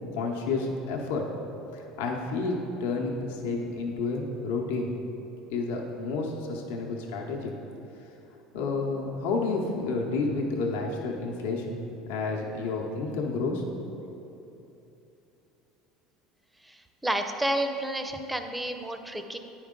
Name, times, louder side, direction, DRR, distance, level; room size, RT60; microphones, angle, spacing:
voice 1, 0.1-1.3 1.7-4.9 5.5-7.5 8.5-13.6 14.1-14.2, left 3 dB, 80° left, 0 dB, 0.8 m, -30 dB
voice 2, 17.0-19.4, right 1 dB, 10° right, 7 dB, 0.5 m, -30 dB
9.4 x 4.6 x 3.7 m, 2.9 s
supercardioid pair, 100°, 0 cm